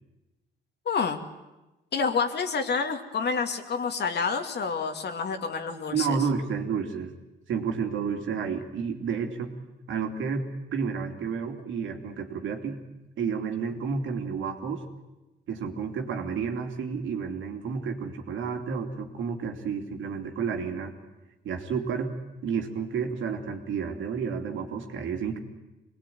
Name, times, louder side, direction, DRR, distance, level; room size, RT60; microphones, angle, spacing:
voice 1, 0.9-1.2 1.9-6.2, left 5 dB, 55° left, 6 dB, 2.5 m, -28 dB
voice 2, 5.9-7.1 7.5-9.5 9.9-12.8 13.2-14.8 15.5-21.0 21.4-22.1 22.4-25.4, right 6 dB, 75° right, 4 dB, 2.9 m, -31 dB
24.5 x 19.5 x 9.3 m, 1.0 s
cardioid pair, 90°, 20 cm